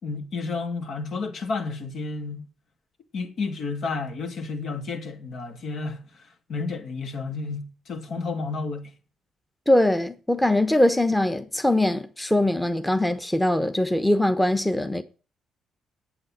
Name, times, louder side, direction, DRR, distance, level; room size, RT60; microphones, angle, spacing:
voice 1, 0.0-2.4 3.1-8.9, left 4 dB, 65° left, 2.7 m, -31 dB
voice 2, 9.7-15.0, left 1 dB, 5° left, 1.1 m, -22 dB
8.8 x 8.5 x 8.8 m
cardioid pair, 90°, 0 cm